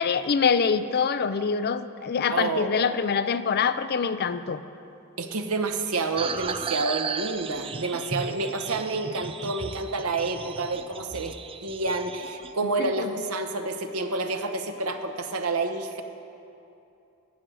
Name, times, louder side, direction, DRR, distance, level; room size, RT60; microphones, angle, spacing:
voice 1, 0.0-4.6 12.8-13.1, left 6 dB, 45° left, 12 dB, 0.4 m, -25 dB
voice 2, 2.3-2.9 5.2-11.3 11.6-16.0, right 3 dB, 80° right, 7 dB, 1.0 m, -29 dB
sound 1, 6.2-12.5, right 5 dB, 25° right, 0.4 m, -35 dB
14.0 x 6.2 x 9.0 m, 2.7 s
head